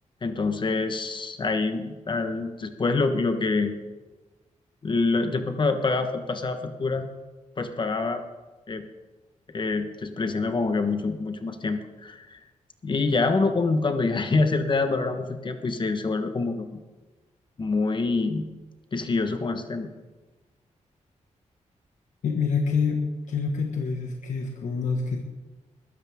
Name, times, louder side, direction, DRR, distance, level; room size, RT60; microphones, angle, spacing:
voice 1, 0.2-3.8 4.8-7.1 7.6-8.2 8.7-8.8 9.5-12.4 12.8-16.8 17.6-18.5 18.9-19.9, left 3 dB, 40° left, 7 dB, 1.3 m, -26 dB
voice 2, 22.2-23.0 23.3-25.2, left 5 dB, 85° left, 1 dB, 1.7 m, -26 dB
21.0 x 13.0 x 3.7 m, 1.2 s
wide cardioid pair, 125°, 13 cm